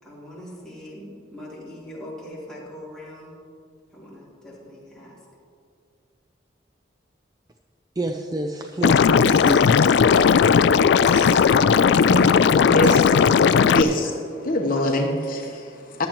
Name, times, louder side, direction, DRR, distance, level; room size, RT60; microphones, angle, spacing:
voice 1, 0.0-3.3 3.9-5.2 14.7-14.9, left 1 dB, 5° left, -8 dB, 3.4 m, -41 dB
voice 2, 8.0-10.0, right 1 dB, 20° right, 4 dB, 0.5 m, -28 dB
Liquid, 8.8-13.8, left 6 dB, 70° left, 0.3 m, -16 dB
sound 1, 9.3-10.8 11.1-12.5 12.8-14.2, right 1 dB, 45° right, 3.1 m, -42 dB
voice 3, 12.6-13.2 13.6-14.1 14.4-16.1, left 1 dB, 50° left, 2 dB, 1.0 m, -24 dB
15.5 x 12.0 x 3.0 m, 2.4 s
head